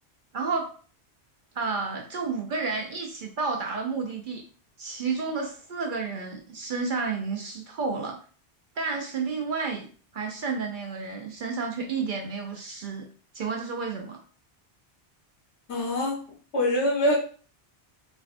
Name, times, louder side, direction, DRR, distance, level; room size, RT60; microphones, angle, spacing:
voice 1, 0.3-0.7 1.6-4.4 4.8-8.2 8.8-9.9 10.1-13.1 13.3-14.2, right 4 dB, 60° right, 2 dB, 0.6 m, -31 dB
voice 2, 15.7-16.2 16.5-17.2, left 1 dB, 80° left, -2 dB, 1.2 m, -24 dB
3.4 x 2.1 x 2.5 m, 0.40 s
omnidirectional pair, 1.1 m